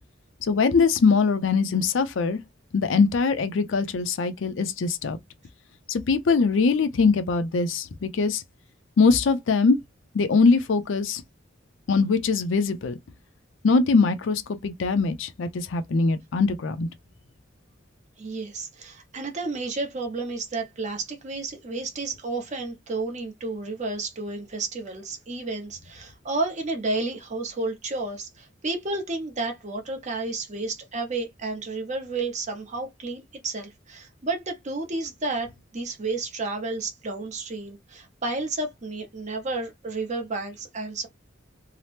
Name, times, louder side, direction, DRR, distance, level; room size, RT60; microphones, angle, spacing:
voice 1, 0.4-2.4 2.7-5.2 5.9-8.4 9.0-9.8 10.1-11.2 11.9-13.0 13.6-16.9, left 4 dB, 75° left, 0.5 m, -22 dB
voice 2, 18.2-41.1, right 3 dB, 40° right, 0.8 m, -31 dB
2.8 x 2.0 x 3.2 m
head